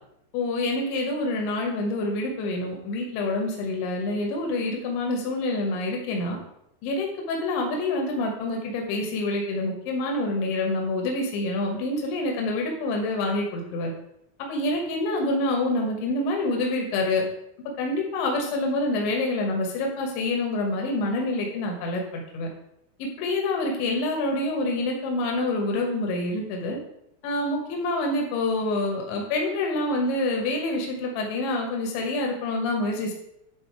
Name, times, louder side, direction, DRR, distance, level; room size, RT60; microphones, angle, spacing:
voice 1, 0.3-6.4 6.8-13.9 14.5-17.2 17.8-22.5 23.0-26.8 27.2-33.1, left 2 dB, 85° left, 1 dB, 3.6 m, -27 dB
11.0 x 3.9 x 4.7 m, 0.79 s
omnidirectional pair, 5.1 m